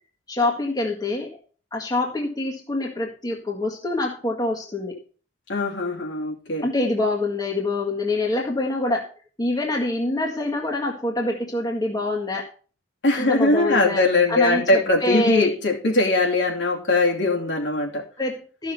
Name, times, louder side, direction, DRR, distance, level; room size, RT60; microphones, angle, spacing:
voice 1, 0.3-1.3 1.7-5.0 6.6-9.1 9.4-12.5 13.2-14.0 14.3-15.5 18.2-18.7, left 2 dB, 20° left, -1 dB, 1.7 m, -25 dB
voice 2, 5.5-6.7 13.0-18.0, left 2 dB, 65° left, -1 dB, 2.9 m, -21 dB
13.5 x 6.3 x 5.6 m, 0.40 s
head